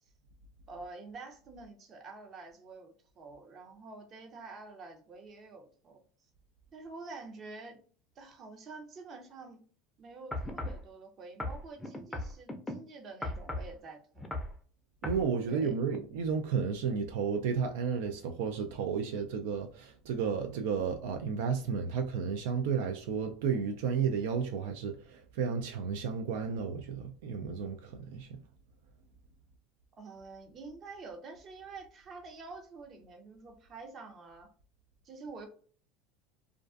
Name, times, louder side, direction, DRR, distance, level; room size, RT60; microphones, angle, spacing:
voice 1, 0.7-6.0 6.7-7.8 8.2-9.6 10.0-14.3 15.4-15.8 30.0-34.5 35.0-35.5, right 3 dB, 40° right, 0.6 m, -48 dB
sound 1, 10.3-10.8 11.4-12.7 13.2-13.7 14.2-14.5 15.0-15.2 15.9-16.0, left 1 dB, 10° left, 0.5 m, -37 dB
voice 2, 15.0-28.3, right 6 dB, 80° right, 0.3 m, -32 dB
2.4 x 2.3 x 2.4 m
supercardioid pair, 110°, 0 cm